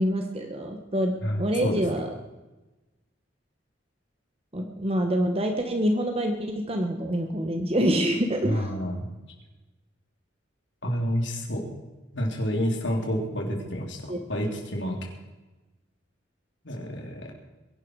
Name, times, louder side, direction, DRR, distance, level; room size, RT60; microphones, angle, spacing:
voice 1, 0.0-1.1 1.4-2.1 4.5-8.7 14.1-14.2, equal, 30° right, 4 dB, 1.3 m, -26 dB
voice 2, 1.2-1.8 8.4-9.1 10.8-11.6 12.1-14.0 14.3-15.0 16.6-17.2, equal, 70° left, 1 dB, 3.6 m, -28 dB
22.0 x 11.5 x 4.8 m, 1.1 s
head